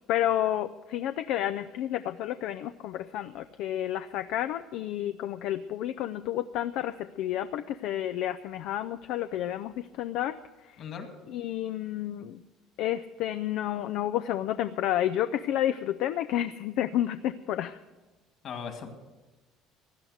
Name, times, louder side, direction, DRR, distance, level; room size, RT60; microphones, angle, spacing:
voice 1, 0.1-10.4 10.6-10.8 11.3-12.4 12.8-17.8, left 12 dB, 70° left, 10 dB, 0.4 m, -30 dB
voice 2, 18.4-18.9, left 7 dB, 50° left, 5 dB, 2.3 m, -38 dB
16.5 x 10.5 x 6.5 m, 1.2 s
cardioid pair, 120°, 0 cm